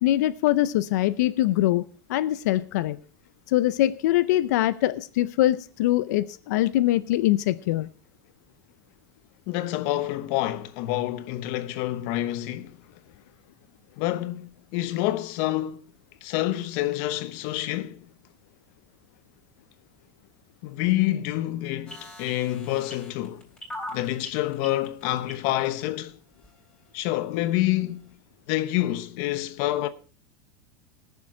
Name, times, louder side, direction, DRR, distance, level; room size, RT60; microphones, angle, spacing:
voice 1, 0.0-1.8 2.1-3.0 3.5-7.9, left 14 dB, 85° left, 0.5 m, -23 dB
voice 2, 9.5-12.8 14.0-15.8 16.2-18.1 20.6-23.5 23.9-26.2 26.9-28.1 28.5-29.9, left 15 dB, 60° left, 1.0 m, -27 dB
sound 1, 21.9-25.8 26.4-26.5, left 1 dB, 10° left, 3.9 m, -39 dB
18.5 x 7.1 x 4.7 m
supercardioid pair, 135°, 9 cm